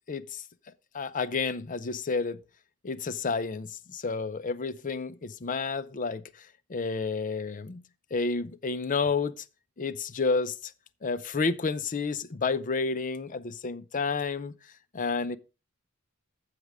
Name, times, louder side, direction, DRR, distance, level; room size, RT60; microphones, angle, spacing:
voice 1, 0.1-0.4 0.9-2.4 2.8-7.8 8.1-9.4 9.8-10.7 11.0-14.5 14.9-15.4, left 4 dB, 40° left, 0.6 m, -30 dB
14.5 x 5.1 x 3.5 m
head